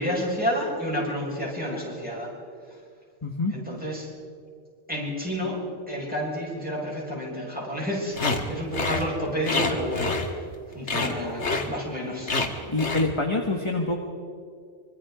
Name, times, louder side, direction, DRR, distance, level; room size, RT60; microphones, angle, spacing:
voice 1, 0.0-2.3 3.5-4.1 4.9-10.4 10.7-12.4, equal, 5° right, -4 dB, 6.4 m, -30 dB
voice 2, 3.2-3.5 12.7-14.0, left 2 dB, 25° left, 2 dB, 1.6 m, -26 dB
sound 1, 8.2-8.4 8.7-9.0 9.4-10.6 10.9-11.1 11.4-11.7 12.3-12.5 12.8-13.1, left 3 dB, 70° left, 2.1 m, -27 dB
25.0 x 24.0 x 5.1 m, 2.3 s
omnidirectional pair, 1.2 m